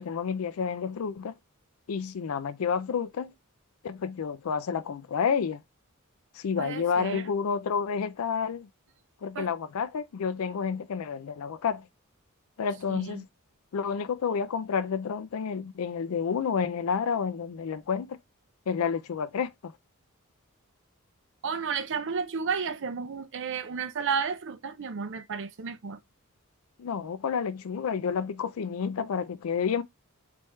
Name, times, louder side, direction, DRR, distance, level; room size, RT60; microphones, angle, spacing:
voice 1, 0.0-1.3 1.9-3.3 3.8-5.6 6.3-8.7 9.2-11.9 12.6-13.3 13.7-18.2 18.7-19.7 26.8-29.8, left 6 dB, 75° left, 0.4 m, -30 dB
voice 2, 6.6-7.3 9.3-9.5 12.9-13.2 21.4-26.0, right 6 dB, 60° right, 0.5 m, -32 dB
4.3 x 3.4 x 3.1 m
head